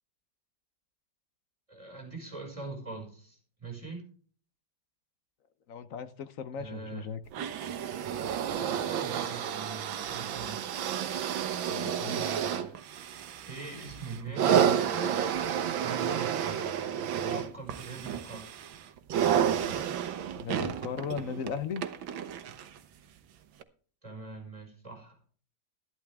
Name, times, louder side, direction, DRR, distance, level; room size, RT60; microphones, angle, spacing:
voice 1, 1.7-4.1 6.6-7.0 8.5-10.7 12.0-12.7 13.4-15.1 15.8-16.7 17.2-18.5 24.0-25.2, right 4 dB, 15° right, 2 dB, 5.2 m, -42 dB
voice 2, 5.7-7.2 11.7-12.4 20.3-21.8, left 7 dB, 55° left, 12 dB, 1.0 m, -37 dB
sound 1, 7.3-22.8 23.6-23.7, right 8 dB, 85° right, 1.8 m, -31 dB
12.5 x 12.0 x 3.5 m, 0.43 s
omnidirectional pair, 2.1 m